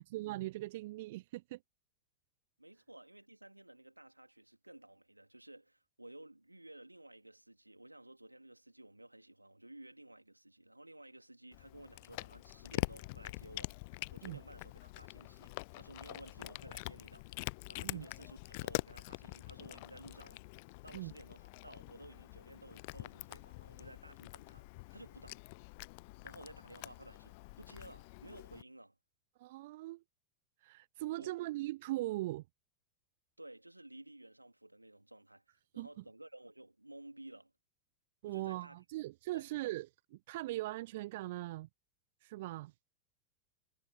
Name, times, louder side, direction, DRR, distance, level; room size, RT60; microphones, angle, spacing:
voice 1, 0.0-1.6 14.2-14.4 17.8-18.0 20.9-21.1 29.4-30.0 30.6-32.4 35.8-35.9 38.2-41.7 42.2-42.7, right 18 dB, 55° right, 0.5 m, -40 dB
voice 2, 2.6-20.4 20.8-25.4 26.2-28.9 31.1-31.4 33.4-37.5 38.2-38.8 39.3-39.5, right 1 dB, 85° right, 3.5 m, -55 dB
Cat, 11.5-28.6, left 27 dB, 50° left, 0.6 m, -45 dB
figure-of-eight pair, 90°, 0 cm